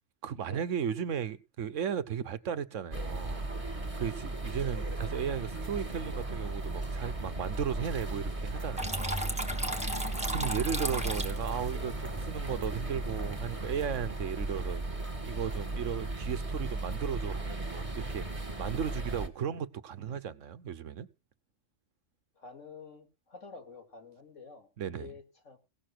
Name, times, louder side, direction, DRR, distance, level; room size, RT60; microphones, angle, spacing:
voice 1, 0.2-10.0 10.3-14.8 15.2-21.1 24.8-25.1, right 8 dB, 80° right, 1.2 m, -36 dB
sound 1, 2.9-19.3, right 2 dB, 25° right, 1.8 m, -36 dB
Water tap faucet / Trickle dribble, 8.8-13.7, right 1 dB, 5° right, 1.5 m, -36 dB
voice 2, 22.4-25.6, left 5 dB, 85° left, 2.8 m, -49 dB
17.5 x 6.6 x 6.0 m
omnidirectional pair, 1.3 m